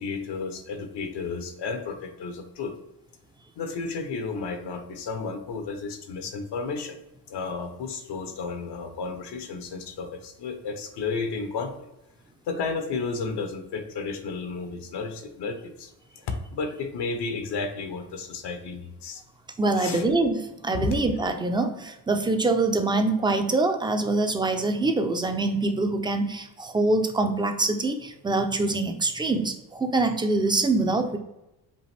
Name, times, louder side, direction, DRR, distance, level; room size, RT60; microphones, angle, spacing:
voice 1, 0.0-2.7 3.6-7.0 7.3-11.9 12.4-19.2 19.8-20.1 20.7-20.9, left 4 dB, 60° left, 7 dB, 0.8 m, -32 dB
voice 2, 19.6-31.2, right 2 dB, 10° right, 6 dB, 0.5 m, -24 dB
5.3 x 2.5 x 3.3 m, 0.92 s
supercardioid pair, 70°, 47 cm